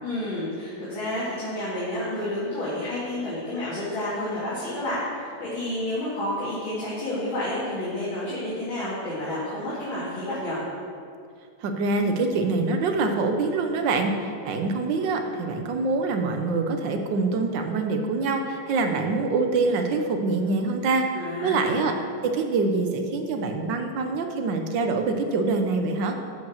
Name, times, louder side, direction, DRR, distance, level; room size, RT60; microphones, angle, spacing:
voice 1, 0.0-10.6 21.1-21.9, left 1 dB, 80° left, -10 dB, 3.2 m, -30 dB
voice 2, 11.6-21.0 21.4-21.9 22.2-26.2, right 3 dB, 70° right, 5 dB, 1.5 m, -25 dB
11.5 x 5.2 x 6.4 m, 2.4 s
omnidirectional pair, 2.2 m